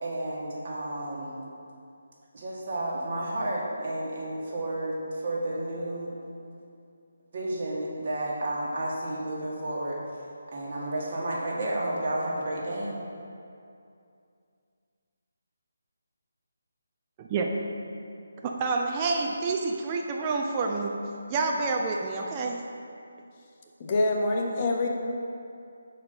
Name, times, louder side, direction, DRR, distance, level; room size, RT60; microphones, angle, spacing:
voice 1, 0.0-1.4 2.3-6.1 7.3-10.0 10.5-13.0, right 1 dB, 45° right, -4 dB, 1.4 m, -31 dB
voice 2, 17.2-17.5 18.4-20.9 21.3-22.6, right 3 dB, 25° right, 1 dB, 0.4 m, -28 dB
voice 3, 23.8-24.9, left 2 dB, 30° left, 0 dB, 0.7 m, -25 dB
5.1 x 4.4 x 5.4 m, 2.5 s
figure-of-eight pair, 155°, 0 cm